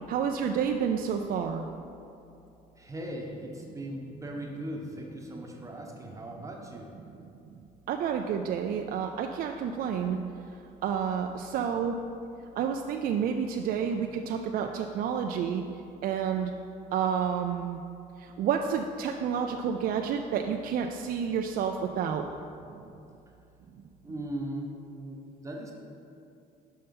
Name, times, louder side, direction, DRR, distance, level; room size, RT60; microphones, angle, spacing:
voice 1, 0.1-1.7 7.9-10.2 10.8-12.0 12.6-15.6 16.0-16.5 16.9-17.8 18.2-22.2 22.7-22.8, right 7 dB, 60° right, 4 dB, 0.4 m, -29 dB
voice 2, 2.8-6.9 24.0-25.7, right 1 dB, 20° right, 0 dB, 1.0 m, -39 dB
5.5 x 5.5 x 5.3 m, 2.7 s
cardioid pair, 110°, 17 cm